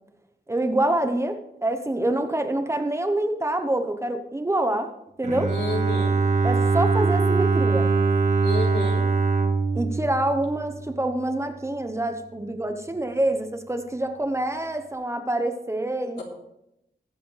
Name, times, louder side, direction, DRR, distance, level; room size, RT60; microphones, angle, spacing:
voice 1, 0.5-4.9 5.2-5.5 6.4-7.9 9.7-16.2, right 1 dB, 15° right, 6 dB, 0.9 m, -26 dB
Bowed string instrument, 5.2-11.2, right 4 dB, 45° right, 1.3 m, -23 dB
voice 2, 5.5-6.1 8.4-9.0 16.2-16.3, left 3 dB, 90° left, -2 dB, 3.6 m, -30 dB
21.5 x 7.8 x 3.3 m, 0.82 s
wide cardioid pair, 165°, 17 cm